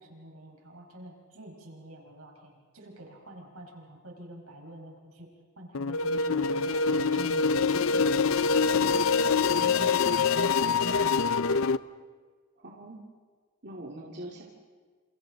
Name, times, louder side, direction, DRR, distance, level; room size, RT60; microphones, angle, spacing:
voice 1, 0.0-5.3 5.6-7.4 7.7-8.0 9.5-11.3, right 1 dB, 80° right, 0 dB, 5.2 m, -45 dB
sound 1, 5.7-11.8, left 5 dB, 65° left, 0.5 m, -25 dB
voice 2, 12.6-13.0 13.6-14.4, right 1 dB, 50° right, -2 dB, 2.4 m, -42 dB
28.5 x 28.0 x 4.0 m, 1.5 s
head